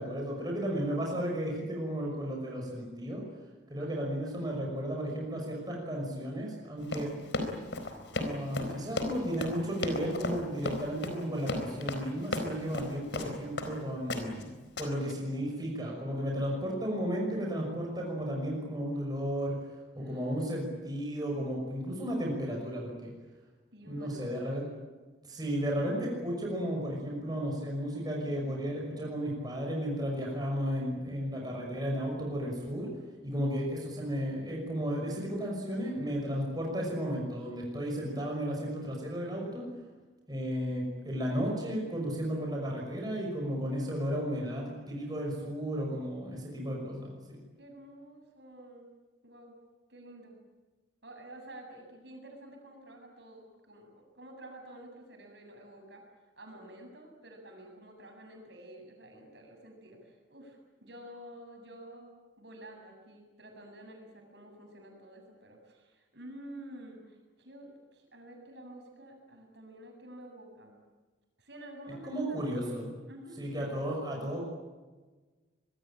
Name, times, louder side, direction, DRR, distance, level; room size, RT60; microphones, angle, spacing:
voice 1, 0.0-3.2 3.7-7.1 8.1-19.6 19.9-23.1 23.8-24.6 25.3-32.9 33.2-39.6 40.3-47.4 72.0-72.9 73.4-74.4, equal, 20° right, -1 dB, 5.9 m, -34 dB
voice 2, 3.8-4.1 20.0-20.4 23.7-24.4 45.0-45.2 47.6-48.9 49.2-49.5 49.9-50.4 51.0-53.9 54.1-56.0 56.4-70.8 71.4-73.4, right 1 dB, 60° right, 2 dB, 7.7 m, -50 dB
Run, 6.8-13.7 14.1-14.4 14.8-15.1, left 2 dB, 70° left, 4.3 m, -35 dB
25.5 x 22.0 x 8.9 m, 1.3 s
head